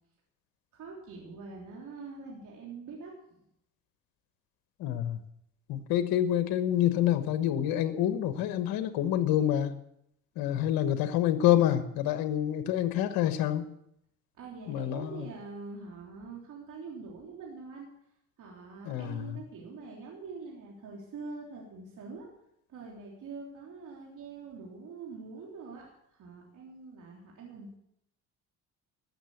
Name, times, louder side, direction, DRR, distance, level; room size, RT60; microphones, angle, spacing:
voice 1, 0.7-3.4 14.4-17.9 18.4-22.3 22.7-27.8, right 4 dB, 60° right, -2 dB, 3.5 m, -44 dB
voice 2, 4.8-5.2 5.7-9.8 10.4-13.6 14.7-15.3 18.8-19.4, left 11 dB, 80° left, 10 dB, 1.3 m, -27 dB
15.0 x 6.7 x 8.5 m, 0.75 s
supercardioid pair, 85°, 35 cm